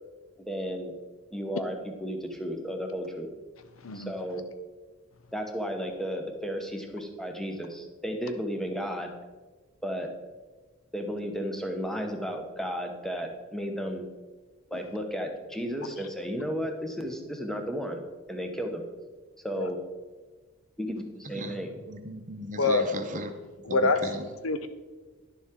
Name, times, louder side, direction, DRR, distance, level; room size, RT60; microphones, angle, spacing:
voice 1, 0.5-0.9 1.3-1.7 2.0-3.3 3.9-4.4 5.3-9.1 9.8-10.1 10.9-14.0 14.7-18.0 18.3-18.8 19.4-19.8 20.8-21.0 21.3-21.7, equal, ahead, 4 dB, 0.9 m, -33 dB
voice 2, 21.2-21.6 21.9-23.3 23.7-24.3, right 1 dB, 35° right, 6 dB, 0.8 m, -37 dB
voice 3, 23.7-24.0 24.4-24.7, left 3 dB, 70° left, 10 dB, 0.7 m, -25 dB
11.0 x 7.1 x 3.7 m, 1.3 s
head